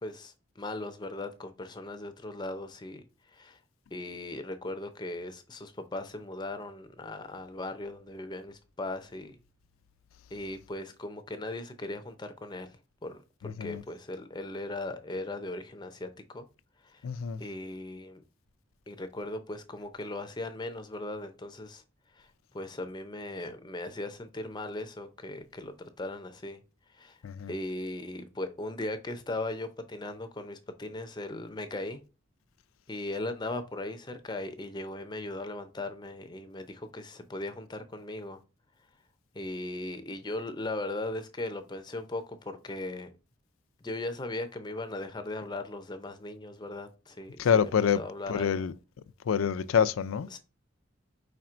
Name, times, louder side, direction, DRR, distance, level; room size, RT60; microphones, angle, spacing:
voice 1, 0.0-3.6 3.9-9.4 10.3-16.5 16.8-17.1 17.4-18.2 18.9-26.6 26.9-27.2 27.5-32.0 32.9-38.4 38.8-38.9 39.3-43.1 43.8-48.5 50.3-50.4, left 2 dB, 20° left, 0.5 m, -38 dB
voice 2, 13.4-13.8 17.0-17.4 27.2-27.5 47.4-48.0 48.3-48.7 49.2-50.3, left 7 dB, 85° left, 0.4 m, -26 dB
5.0 x 4.3 x 2.4 m
head